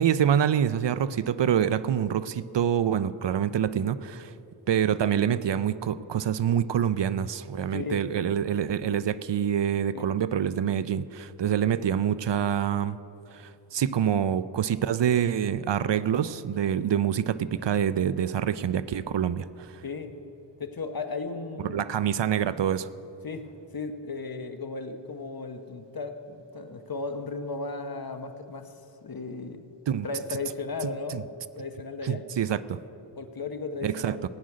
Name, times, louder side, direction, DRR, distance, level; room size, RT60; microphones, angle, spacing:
voice 1, 0.0-4.3 4.7-13.0 13.3-19.8 21.7-22.9 29.9-30.1 31.1-31.2 32.0-32.8 33.8-34.2, right 9 dB, 65° right, 15 dB, 0.5 m, -26 dB
voice 2, 7.7-8.0 9.9-10.0 19.8-20.2 20.6-21.8 23.2-29.6 30.0-31.3 31.5-32.2 33.2-34.2, left 3 dB, 50° left, 7 dB, 1.0 m, -35 dB
17.5 x 6.3 x 9.4 m, 2.8 s
wide cardioid pair, 70°, 46 cm